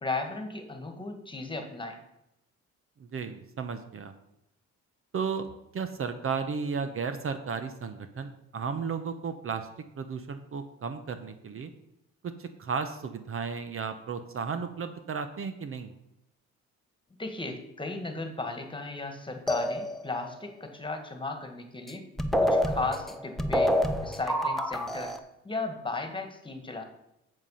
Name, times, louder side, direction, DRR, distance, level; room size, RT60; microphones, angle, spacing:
voice 1, 0.0-2.0 17.2-22.0 22.4-23.7 24.0-25.1 25.4-26.8, left 3 dB, 15° left, 5 dB, 1.8 m, -35 dB
voice 2, 3.0-4.1 5.1-5.5 5.7-9.7 9.9-11.7 12.2-15.9, right 5 dB, 45° right, 9 dB, 0.9 m, -34 dB
sound 1, 19.5-20.3 21.9-22.0 22.2-25.2, equal, ahead, 1.0 m, -27 dB
7.9 x 7.5 x 5.7 m, 0.85 s
cardioid pair, 90°, 30 cm